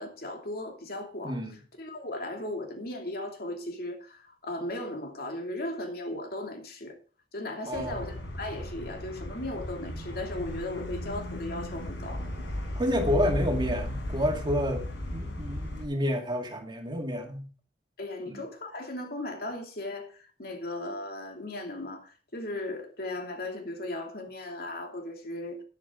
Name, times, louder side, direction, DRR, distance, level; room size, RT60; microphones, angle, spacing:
voice 1, 0.0-1.4 1.8-7.0 7.3-12.3 18.0-25.6, left 1 dB, 55° left, 2.8 m, -37 dB
sound 1, 7.7-15.8, left 1 dB, 80° left, 5.8 m, -35 dB
voice 2, 7.7-8.0 12.8-14.9 15.1-17.4 18.3-18.4, equal, 25° right, 2.2 m, -29 dB
12.5 x 10.5 x 3.8 m
head